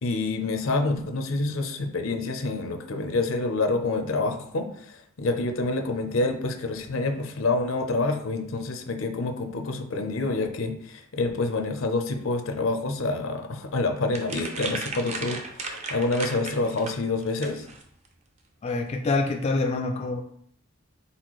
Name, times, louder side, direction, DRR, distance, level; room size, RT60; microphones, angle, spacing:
voice 1, 0.0-17.7, left 3 dB, 80° left, 6 dB, 0.6 m, -27 dB
sound 1, 14.1-18.1, right 3 dB, 35° right, 0.5 m, -35 dB
voice 2, 18.6-20.2, left 3 dB, 30° left, 3 dB, 0.3 m, -26 dB
4.2 x 4.1 x 3.1 m, 0.65 s
head